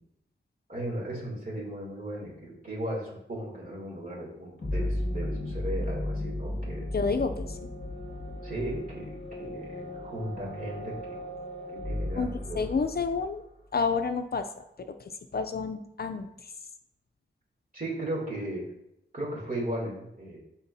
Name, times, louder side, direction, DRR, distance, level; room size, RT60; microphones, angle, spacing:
voice 1, 0.7-6.9 8.4-11.2 11.7-12.8 17.7-18.6 19.1-20.4, right 1 dB, 45° right, -3 dB, 2.9 m, -36 dB
sound 1, 4.6-13.2, left 1 dB, 35° left, 1.7 m, -35 dB
voice 2, 6.9-7.6 12.2-13.4 13.7-16.5, left 4 dB, 50° left, 8 dB, 0.5 m, -30 dB
12.0 x 4.4 x 2.7 m, 0.84 s
wide cardioid pair, 105°, 20 cm